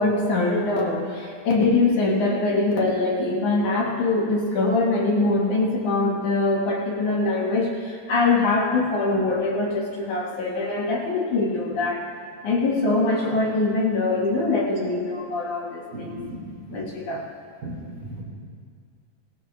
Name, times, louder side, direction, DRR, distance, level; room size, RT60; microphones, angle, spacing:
voice 1, 0.0-12.1 12.4-16.2 16.7-17.2, left 3 dB, 60° left, -3 dB, 3.1 m, -23 dB
voice 2, 15.9-16.8 17.6-17.8 18.0-18.2, right 1 dB, 65° right, -4 dB, 4.8 m, -36 dB
18.5 x 17.0 x 3.4 m, 2.1 s
omnidirectional pair, 4.1 m